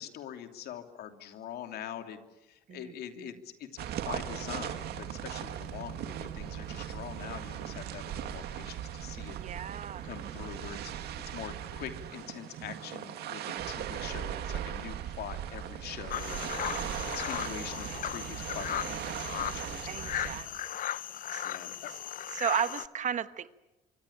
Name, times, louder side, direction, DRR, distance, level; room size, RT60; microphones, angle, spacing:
voice 1, 0.0-9.4 10.0-20.5 21.4-21.9, left 10 dB, 70° left, 6 dB, 2.9 m, -44 dB
voice 2, 2.7-3.4 9.4-10.1 19.9-20.7 21.3-21.4 22.3-23.5, right 8 dB, 45° right, 13 dB, 1.2 m, -35 dB
sound 1, 3.8-20.4, right 10 dB, 75° right, 2.3 m, -38 dB
sound 2, 16.1-22.9, left 11 dB, 55° left, 0.9 m, -37 dB
25.5 x 24.5 x 8.8 m, 1.0 s
cardioid pair, 110°, 17 cm